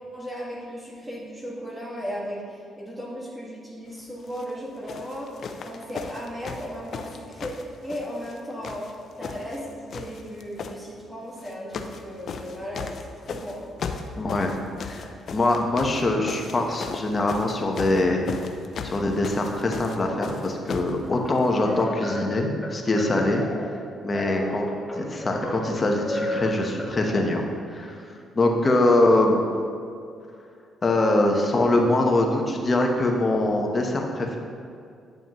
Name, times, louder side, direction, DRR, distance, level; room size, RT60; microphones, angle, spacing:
voice 1, 0.1-5.3 5.6-7.5 7.8-8.8 9.2-13.0 13.2-13.7, equal, 15° right, -5 dB, 1.9 m, -36 dB
sound 1, 4.2-4.5 4.9-8.4 8.6-9.6 9.9-10.8 11.4-12.0 12.3-21.0 21.8-21.9, left 5 dB, 60° left, 0.5 m, -36 dB
voice 2, 14.1-14.5 14.8-18.3 18.8-23.4 24.0-24.7 25.0-27.5 27.7-28.0 28.3-29.4 30.8-34.4, left 2 dB, 30° left, 2 dB, 1.1 m, -23 dB
sound 2, 21.0-27.2, left 1 dB, 5° left, 1.4 m, -33 dB
9.2 x 7.0 x 3.1 m, 2.4 s
cardioid pair, 90°, 0 cm